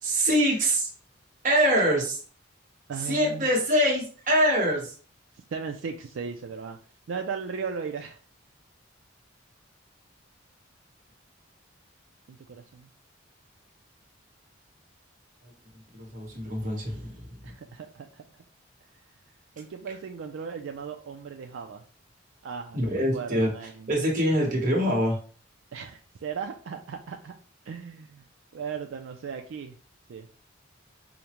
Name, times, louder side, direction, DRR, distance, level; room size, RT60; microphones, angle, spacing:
voice 1, 0.0-0.9 1.4-2.2 3.1-4.9 16.0-17.4 22.7-23.5 23.9-25.2, equal, 40° right, -1 dB, 1.2 m, -24 dB
voice 2, 2.9-3.5 5.5-6.8 7.1-8.2 12.3-12.9 17.4-18.2 19.6-21.8 22.4-23.9 25.7-27.3 27.7-28.3 28.5-29.8 30.1-30.3, right 6 dB, 75° right, 4 dB, 0.4 m, -37 dB
5.0 x 2.1 x 2.9 m, 0.39 s
head